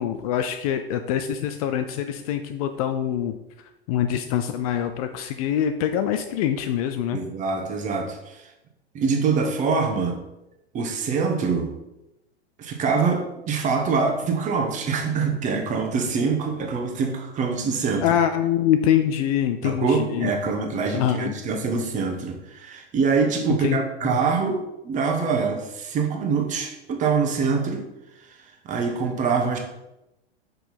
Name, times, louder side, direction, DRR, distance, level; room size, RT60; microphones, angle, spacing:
voice 1, 0.0-3.4 3.9-7.2 18.0-20.3 20.9-21.3 23.6-23.8 24.0-24.2, left 10 dB, 35° left, 8 dB, 0.5 m, -24 dB
voice 2, 7.1-8.5 8.9-10.2 10.7-11.8 12.6-18.2 19.6-27.9 28.2-29.6, right 5 dB, 25° right, 3 dB, 1.2 m, -25 dB
6.0 x 5.5 x 4.3 m, 0.93 s
figure-of-eight pair, 95°, 31 cm